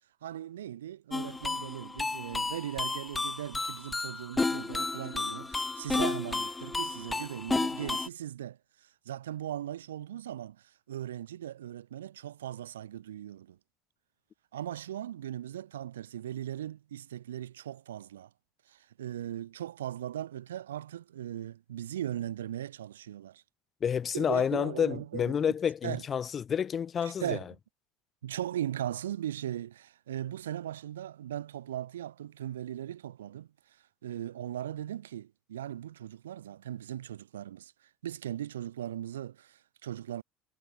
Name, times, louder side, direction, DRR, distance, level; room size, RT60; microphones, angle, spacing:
voice 1, 0.2-13.6 14.5-18.3 18.7-23.4 24.1-25.4 25.8-26.0 27.0-27.5 28.2-33.8 34.0-40.2, right 11 dB, 70° right, 1.9 m, -39 dB
sound 1, 1.1-8.1, left 3 dB, 15° left, 1.3 m, -32 dB
voice 2, 23.8-27.4, left 7 dB, 35° left, 1.0 m, -29 dB
figure-of-eight pair, 65°, 0 cm